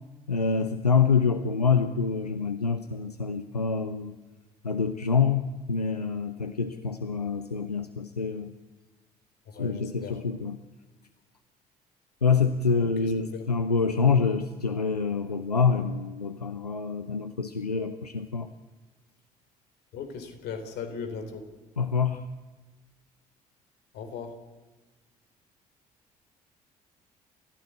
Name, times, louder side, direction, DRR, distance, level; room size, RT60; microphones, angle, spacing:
voice 1, 0.3-4.2 4.6-8.5 9.6-10.6 12.2-18.5 21.8-22.3, left 5 dB, 85° left, 11 dB, 0.7 m, -26 dB
voice 2, 9.5-10.2 12.8-13.4 19.9-21.4 23.9-24.3, left 6 dB, 55° left, 8 dB, 3.9 m, -38 dB
29.0 x 15.5 x 8.3 m, 1.3 s
figure-of-eight pair, 50°, 20 cm